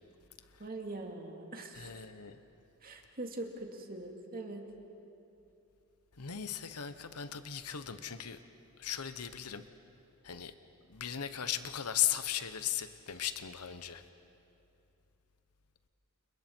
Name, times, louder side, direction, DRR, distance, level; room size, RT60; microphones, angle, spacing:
voice 1, 0.6-1.9 2.8-4.7, right 2 dB, 40° right, 2 dB, 2.3 m, -42 dB
voice 2, 1.8-2.4 6.2-8.4 8.8-9.6 10.2-10.5 10.9-14.0, left 10 dB, 90° left, 11 dB, 1.1 m, -37 dB
29.5 x 29.0 x 4.6 m, 2.8 s
head